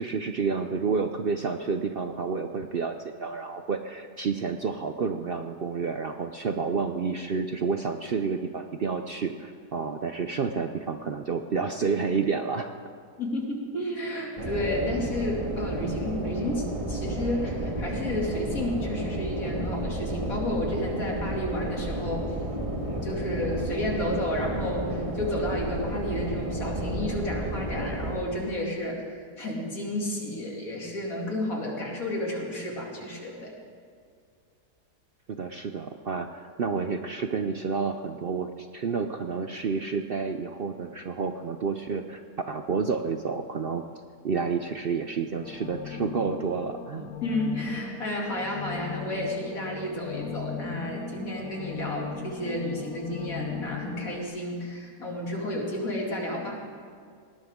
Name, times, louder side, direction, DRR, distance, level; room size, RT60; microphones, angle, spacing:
voice 1, 0.0-12.7 35.3-43.8 44.2-47.1, right 5 dB, 60° right, 6 dB, 0.6 m, -30 dB
voice 2, 13.2-22.3 22.8-29.0 29.4-33.5 47.2-56.6, left 1 dB, 60° left, -1 dB, 3.1 m, -31 dB
sound 1, 14.4-28.2, right 1 dB, 20° right, 1.5 m, -32 dB
sound 2, 45.4-54.2, left 7 dB, 75° left, 1.4 m, -38 dB
19.0 x 17.5 x 3.7 m, 2.2 s
omnidirectional pair, 1.7 m